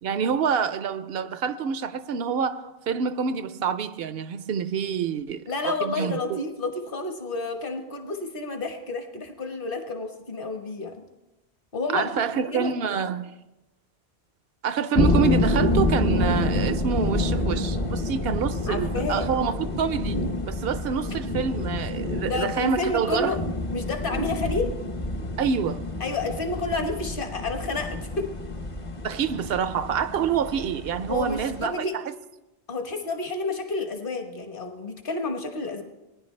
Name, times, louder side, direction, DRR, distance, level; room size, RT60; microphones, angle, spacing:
voice 1, 0.0-6.4 11.9-13.4 14.6-20.2 20.5-23.4 25.4-25.8 29.0-32.0, right 7 dB, 70° right, 0.8 m, -27 dB
voice 2, 5.5-11.0 11.7-12.7 18.7-19.3 22.2-23.4 23.7-24.7 26.0-28.3 31.1-32.0 32.7-35.8, left 3 dB, 60° left, 1.4 m, -30 dB
sound 1, 15.0-31.7, left 2 dB, 35° left, 0.7 m, -28 dB
19.0 x 10.5 x 3.2 m
omnidirectional pair, 1.1 m